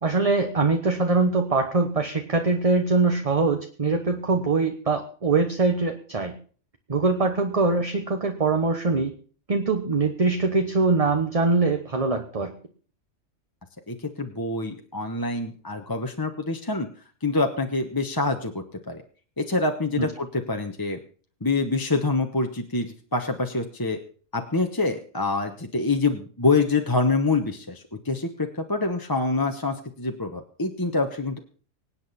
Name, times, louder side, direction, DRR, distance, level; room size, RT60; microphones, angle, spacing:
voice 1, 0.0-6.3 6.9-9.1 9.5-12.5 20.0-20.1, right 3 dB, 30° right, 5 dB, 1.1 m, -23 dB
voice 2, 13.9-16.9 17.2-19.0 19.4-21.0 21.4-24.0 24.3-31.4, left 3 dB, 20° left, 4 dB, 1.0 m, -26 dB
25.0 x 8.7 x 4.2 m, 0.42 s
omnidirectional pair, 1.3 m